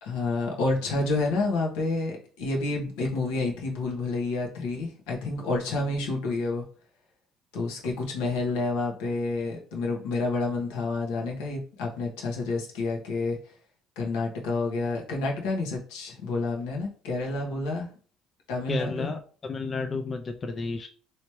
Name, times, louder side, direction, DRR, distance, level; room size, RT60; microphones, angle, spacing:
voice 1, 0.0-6.6 7.5-13.5 14.0-17.9 18.5-19.1, left 3 dB, 90° left, -1 dB, 1.1 m, -29 dB
voice 2, 18.7-20.9, left 4 dB, 30° left, 6 dB, 0.4 m, -31 dB
3.2 x 3.1 x 2.9 m, 0.42 s
supercardioid pair, 100°, 0 cm